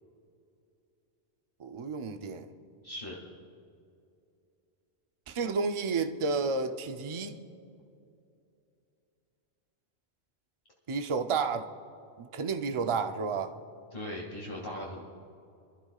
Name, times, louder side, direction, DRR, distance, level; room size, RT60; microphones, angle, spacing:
voice 1, 1.6-2.5 5.3-7.4 10.9-11.7 12.2-13.5, right 4 dB, 35° right, 0.6 m, -31 dB
voice 2, 2.8-3.2 13.9-15.1, left 1 dB, 55° left, 2.2 m, -39 dB
25.5 x 13.0 x 2.4 m
omnidirectional pair, 1.1 m